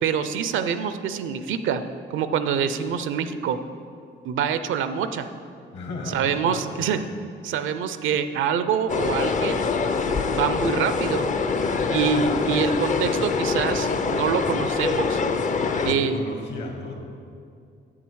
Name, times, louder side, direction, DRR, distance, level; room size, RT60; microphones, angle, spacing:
voice 1, 0.0-1.8 2.1-3.6 4.2-5.3 6.1-7.0 7.4-9.6 10.3-11.3 11.9-15.2 15.8-16.2, right 7 dB, 80° right, 11 dB, 0.5 m, -25 dB
voice 2, 5.7-7.0 11.6-11.9 15.5-17.0, left 2 dB, 65° left, 1 dB, 1.7 m, -35 dB
sound 1, 8.9-15.9, left 4 dB, 40° left, 0.5 m, -24 dB
8.0 x 7.4 x 4.7 m, 2.5 s
cardioid pair, 90°, 20 cm